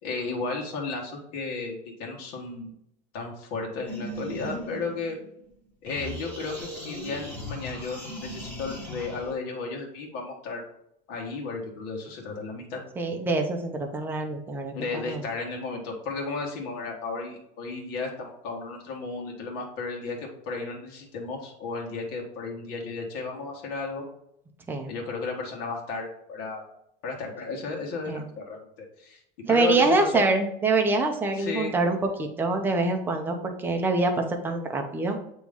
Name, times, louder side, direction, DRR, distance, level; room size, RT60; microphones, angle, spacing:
voice 1, 0.0-2.7 3.1-5.2 5.8-10.6 11.1-12.8 14.7-24.0 24.9-26.7 27.0-28.7 29.0-29.2 29.5-30.2 31.3-31.7, left 4 dB, 55° left, 0 dB, 1.6 m, -34 dB
sound 1, 3.9-5.5 5.9-9.3, equal, 10° left, 1.3 m, -38 dB
voice 2, 13.0-15.2 24.7-25.0 28.1-28.2 29.4-35.2, right 3 dB, 10° right, 3 dB, 0.6 m, -25 dB
8.9 x 3.1 x 3.6 m, 0.76 s
cardioid pair, 175°, 21 cm